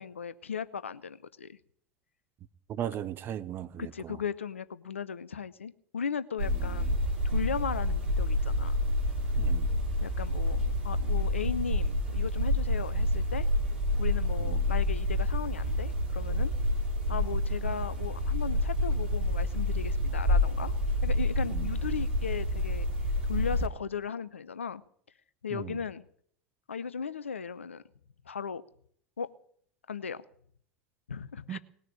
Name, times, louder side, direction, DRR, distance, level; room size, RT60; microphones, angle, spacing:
voice 1, 0.0-1.6 3.8-7.0 7.2-8.8 10.0-13.5 14.0-16.5 17.1-20.8 21.0-22.9 23.2-24.8 25.4-26.1 26.7-27.8 28.2-28.6 29.2-29.3 29.9-30.2 31.1-31.6, left 6 dB, 75° left, 0.7 m, -36 dB
voice 2, 2.7-3.9 9.4-9.7 14.5-14.6 21.5-21.6 25.5-25.7 31.5-31.6, right 10 dB, 30° right, 0.8 m, -36 dB
sound 1, 6.4-23.7, left 1 dB, 60° right, 4.2 m, -28 dB
19.0 x 6.7 x 9.9 m
figure-of-eight pair, 80°, 7 cm